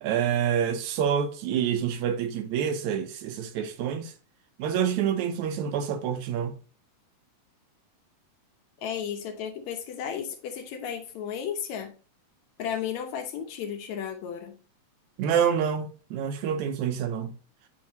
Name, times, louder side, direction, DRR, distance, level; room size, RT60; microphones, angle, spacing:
voice 1, 0.0-4.1 4.6-6.5 15.2-17.4, right 8 dB, 80° right, 2.1 m, -27 dB
voice 2, 8.8-11.9 12.6-14.6, left 8 dB, 75° left, 2.1 m, -34 dB
8.8 x 3.7 x 3.0 m
omnidirectional pair, 3.4 m